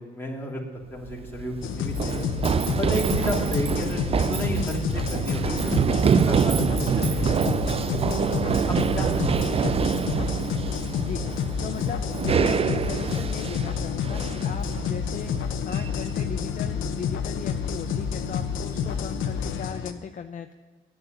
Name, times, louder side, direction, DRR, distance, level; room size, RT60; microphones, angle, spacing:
voice 1, 0.0-2.3 2.7-8.2 8.7-10.2, equal, 10° left, -2 dB, 2.7 m, -33 dB
Run, 1.0-19.5, right 7 dB, 30° right, 0.4 m, -27 dB
sound 1, 1.6-19.9, left 7 dB, 80° left, 0.8 m, -29 dB
voice 2, 11.0-20.5, left 7 dB, 40° left, 7 dB, 0.6 m, -37 dB
9.4 x 8.9 x 9.3 m, 1.4 s
cardioid pair, 90°, 20 cm